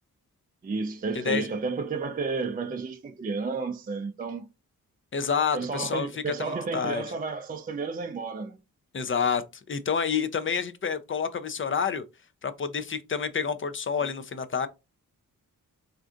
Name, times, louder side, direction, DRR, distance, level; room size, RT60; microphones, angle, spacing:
voice 1, 0.6-4.5 5.5-8.6 14.0-14.1, right 4 dB, 25° right, 0.4 m, -32 dB
voice 2, 5.1-6.1 6.4-7.0 8.9-9.4 9.7-12.0 12.4-14.7, left 6 dB, 35° left, 0.4 m, -28 dB
3.3 x 2.5 x 2.4 m
cardioid pair, 60°, 35 cm